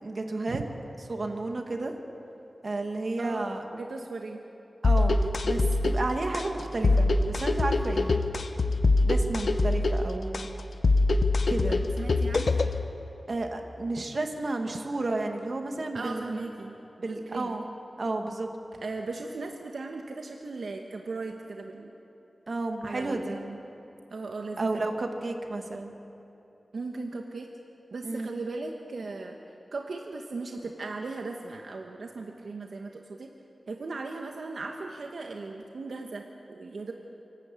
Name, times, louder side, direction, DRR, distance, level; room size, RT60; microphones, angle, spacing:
voice 1, 0.0-0.6 1.1-1.9 2.6-3.6 4.8-8.2 9.0-10.5 11.5-11.8 13.3-16.4 17.0-17.6 18.0-18.5 22.5-23.4 24.6-25.9 28.0-28.3, right 2 dB, 55° right, 4 dB, 1.9 m, -32 dB
voice 2, 3.2-4.4 11.7-12.5 15.9-17.5 18.8-21.9 22.8-23.6 24.1-24.7 26.7-27.5 27.9-29.4 29.7-33.3 33.7-36.2 36.5-36.9, right 3 dB, 80° right, 2 dB, 1.3 m, -37 dB
sound 1, 4.8-12.8, left 2 dB, 65° left, 1.0 m, -24 dB
27.0 x 12.5 x 8.4 m, 2.9 s
wide cardioid pair, 80°, 0 cm